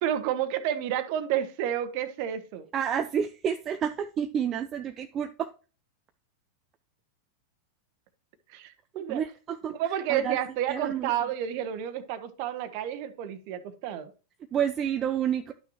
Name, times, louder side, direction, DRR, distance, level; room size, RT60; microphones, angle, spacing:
voice 1, 0.0-2.7 8.5-9.2 9.7-14.1, right 10 dB, 45° right, 11 dB, 1.0 m, -30 dB
voice 2, 2.7-5.5 8.9-9.7 10.1-10.4 10.7-11.1 14.5-15.5, right 8 dB, 30° right, 8 dB, 0.5 m, -29 dB
11.5 x 6.0 x 2.9 m, 0.35 s
figure-of-eight pair, 90°, 0 cm